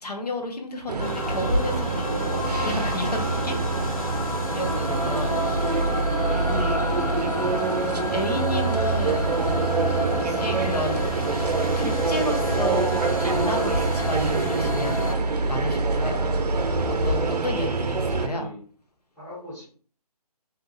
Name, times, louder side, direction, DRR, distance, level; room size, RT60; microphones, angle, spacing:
voice 1, 0.0-3.6 4.5-5.7 6.5-6.8 7.8-9.3 10.1-11.0 11.8-15.1 15.5-16.3 17.0-18.4, left 1 dB, 80° left, 3 dB, 1.0 m, -31 dB
sound 1, 0.9-18.3, right 3 dB, 90° right, 0.5 m, -25 dB
sound 2, 1.0-15.1, left 3 dB, 60° left, 0.5 m, -31 dB
voice 2, 17.8-18.6 19.1-19.6, left 1 dB, 5° left, -11 dB, 0.8 m, -41 dB
2.7 x 2.3 x 2.6 m, 0.44 s
figure-of-eight pair, 150°, 20 cm